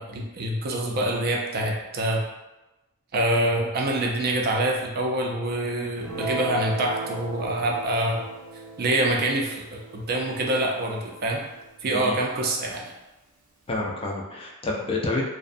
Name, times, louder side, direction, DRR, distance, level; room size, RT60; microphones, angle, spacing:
voice 1, 0.0-2.2 3.1-8.2 8.8-11.4 11.8-12.9, right 1 dB, 45° right, 0 dB, 0.4 m, -25 dB
Guitar, 6.0-12.6, right 4 dB, 85° right, 0.6 m, -38 dB
voice 2, 13.7-15.2, left 2 dB, 25° left, -1 dB, 0.3 m, -28 dB
2.5 x 2.1 x 2.5 m, 1.0 s
head